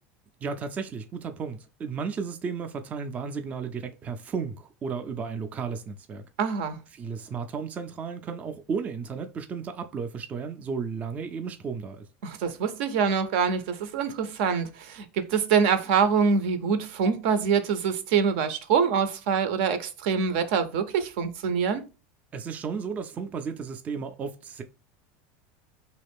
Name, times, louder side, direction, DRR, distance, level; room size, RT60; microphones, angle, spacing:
voice 1, 0.4-6.2 6.9-12.1 22.3-24.6, right 5 dB, 25° right, 0.4 m, -34 dB
voice 2, 6.4-6.8 12.2-21.8, right 6 dB, 70° right, 0.6 m, -25 dB
3.0 x 2.4 x 3.4 m
supercardioid pair, 135°, 6 cm